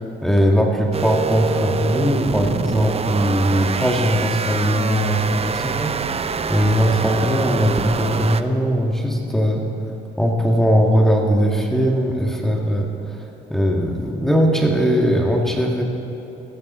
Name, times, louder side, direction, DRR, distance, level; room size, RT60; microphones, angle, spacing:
voice 1, 0.0-6.0 6.5-9.7 10.2-12.9 13.5-15.8, equal, ahead, 0 dB, 1.9 m, -19 dB
sound 1, 0.9-8.4, right 5 dB, 30° right, 0.5 m, -25 dB
15.5 x 15.0 x 4.3 m, 2.9 s
cardioid pair, 90°, 20 cm